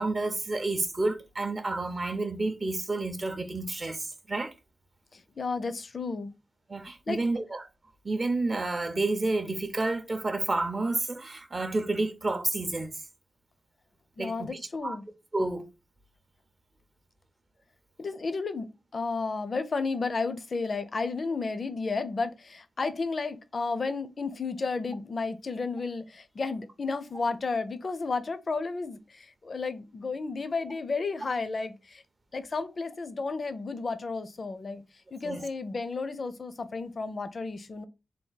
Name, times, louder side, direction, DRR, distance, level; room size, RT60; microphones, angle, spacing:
voice 1, 0.0-4.5 6.7-7.7 8.0-13.0 14.2-15.0 15.3-15.7 35.2-35.4, right 2 dB, 35° right, 0.5 m, -30 dB
voice 2, 5.1-6.3 7.1-7.2 14.2-15.0 18.0-32.0 32.3-34.8 35.1-37.9, left 4 dB, 45° left, 0.5 m, -32 dB
3.4 x 2.3 x 3.9 m
wide cardioid pair, 95°, 0 cm